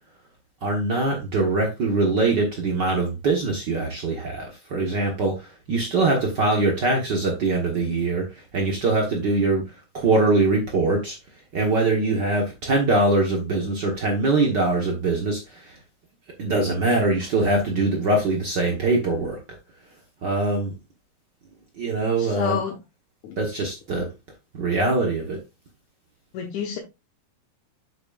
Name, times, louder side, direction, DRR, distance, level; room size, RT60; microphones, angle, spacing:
voice 1, 0.6-9.6 9.9-11.2 11.5-15.8 16.4-19.4 20.2-20.7 21.8-22.6 23.4-24.1 24.6-25.4, right 2 dB, 85° right, 0.9 m, -23 dB
voice 2, 22.2-22.8 23.2-23.4 26.3-26.8, left 7 dB, 65° left, 2.2 m, -29 dB
7.6 x 7.2 x 2.4 m
omnidirectional pair, 4.1 m